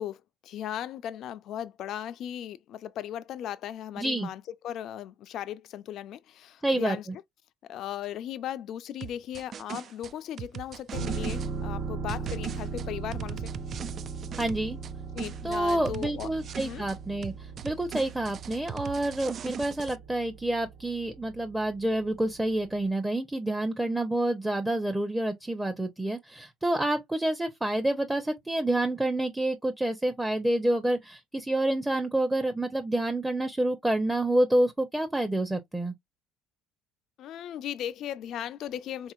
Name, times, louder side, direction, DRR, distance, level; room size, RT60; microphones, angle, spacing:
voice 1, 0.0-7.1 7.7-13.5 15.1-16.3 16.6-16.9 37.2-39.1, left 11 dB, 55° left, 0.4 m, -37 dB
voice 2, 4.0-4.3 6.6-7.0 14.4-14.8 15.4-35.9, right 1 dB, 10° right, 0.8 m, -28 dB
sound 1, 9.0-11.5 12.1-14.9 15.2-17.0 17.2-20.0, right 8 dB, 45° right, 0.3 m, -39 dB
sound 2, 10.9-22.5 22.8-22.9, right 5 dB, 65° right, 1.3 m, -38 dB
3.9 x 2.8 x 2.4 m
hypercardioid pair, 65°, 0 cm